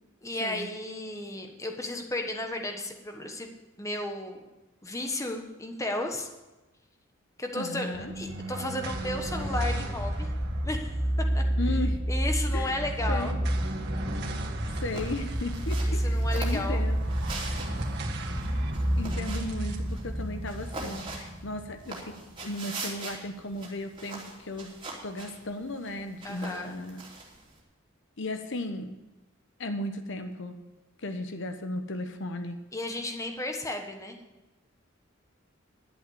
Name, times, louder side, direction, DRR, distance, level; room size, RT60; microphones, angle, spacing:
voice 1, 0.2-3.5 3.8-4.4 4.8-6.3 7.4-10.3 10.6-11.4 12.1-13.3 16.0-16.8 26.2-26.8 32.7-34.2, left 1 dB, 15° left, 4 dB, 1.3 m, -34 dB
voice 2, 7.5-8.1 11.6-12.0 12.5-12.8 13.1-13.4 14.8-17.0 19.0-24.7 25.0-27.0 28.2-28.9 29.6-30.6 31.0-32.6, left 1 dB, 60° left, 7 dB, 1.0 m, -35 dB
Epic Logo, 7.9-22.5, right 1 dB, 55° right, 1.7 m, -30 dB
sound 1, 14.8-27.6, right 3 dB, 25° right, 3.1 m, -43 dB
11.5 x 7.9 x 8.0 m, 1.1 s
head